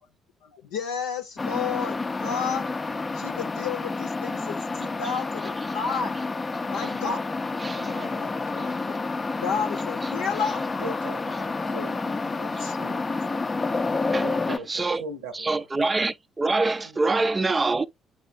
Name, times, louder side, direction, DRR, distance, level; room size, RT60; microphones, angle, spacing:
voice 1, 0.4-2.7 3.1-6.2 6.7-7.2 8.5-9.1 9.4-10.6 12.4-12.9 13.3-13.4, left 6 dB, 75° left, 0.7 m, -32 dB
sound 1, 1.4-14.6, left 3 dB, 30° left, 0.5 m, -29 dB
voice 2, 7.7-8.5 10.8-13.1 14.2-15.7 16.8-17.0, right 2 dB, 80° right, 1.0 m, -41 dB
voice 3, 14.7-15.0 15.3-17.9, right 3 dB, 25° right, 0.4 m, -25 dB
8.0 x 4.9 x 2.5 m
figure-of-eight pair, 45°, 0 cm